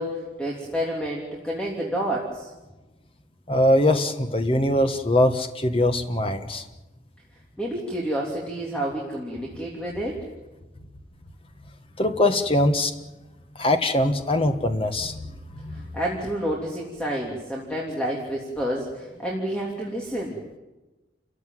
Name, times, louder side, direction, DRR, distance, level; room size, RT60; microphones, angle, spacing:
voice 1, 0.0-2.5 7.6-10.2 15.7-20.4, equal, 5° left, -3 dB, 3.2 m, -29 dB
voice 2, 3.5-6.6 12.0-12.9 13.6-15.2 15.6-15.8, left 1 dB, 30° left, 7 dB, 1.5 m, -22 dB
29.5 x 14.5 x 9.4 m, 1.1 s
head